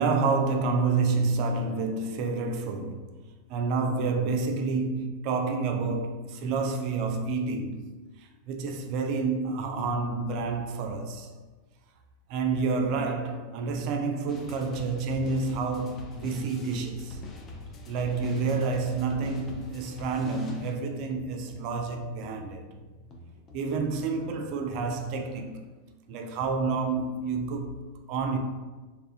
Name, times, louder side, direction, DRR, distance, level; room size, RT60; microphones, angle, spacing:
voice 1, 0.0-3.1 3.5-7.9 8.2-11.3 12.3-17.2 17.9-22.6 23.5-25.6 26.1-28.4, right 4 dB, 45° right, 0.4 m, -29 dB
sound 1, 14.3-25.6, left 2 dB, 25° left, 0.4 m, -46 dB
3.5 x 2.4 x 2.3 m
figure-of-eight pair, 90°, 0 cm